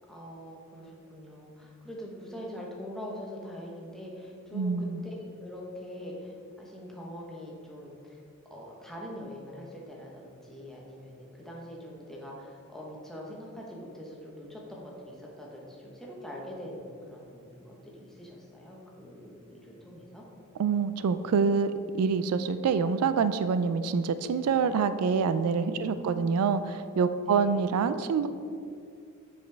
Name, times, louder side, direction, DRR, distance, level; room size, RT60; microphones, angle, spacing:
voice 1, 0.1-8.2 8.5-20.2 25.6-26.4 27.3-27.7, equal, ahead, -3 dB, 0.9 m, -43 dB
voice 2, 4.5-5.0 20.6-28.3, right 5 dB, 85° right, 13 dB, 0.3 m, -26 dB
7.2 x 5.1 x 3.4 m, 2.4 s
head